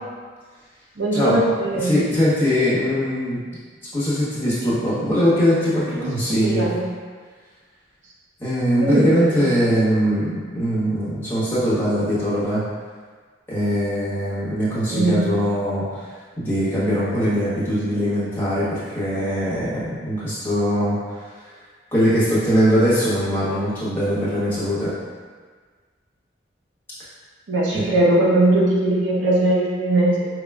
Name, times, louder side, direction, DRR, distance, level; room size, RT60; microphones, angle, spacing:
voice 1, 1.0-2.0 5.9-6.9 8.8-9.4 14.9-15.3 27.5-30.3, right 1 dB, 80° right, -4 dB, 0.7 m, -20 dB
voice 2, 1.7-3.4 3.9-6.7 8.4-12.6 13.5-16.0 16.4-21.0 21.4-21.5 21.9-24.9 27.7-27.9, equal, 10° left, -12 dB, 1.3 m, -21 dB
5.1 x 3.0 x 2.4 m, 1.5 s
head